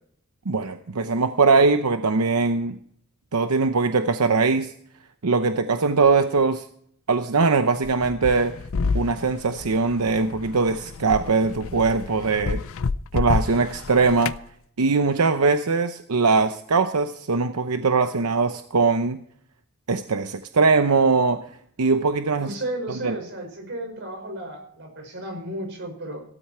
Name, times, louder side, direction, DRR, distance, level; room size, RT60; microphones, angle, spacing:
voice 1, 0.5-2.8 3.3-4.7 5.2-6.7 7.1-8.5 8.9-12.6 13.1-14.4 14.8-19.2 19.9-21.4 21.8-22.5 23.0-23.1, right 4 dB, 85° right, 8 dB, 0.8 m, -21 dB
sound 1, 7.8-14.4, left 4 dB, 60° left, 0.5 m, -29 dB
voice 2, 22.4-26.2, right 1 dB, 55° right, 3 dB, 5.7 m, -33 dB
16.5 x 13.5 x 4.4 m, 0.63 s
head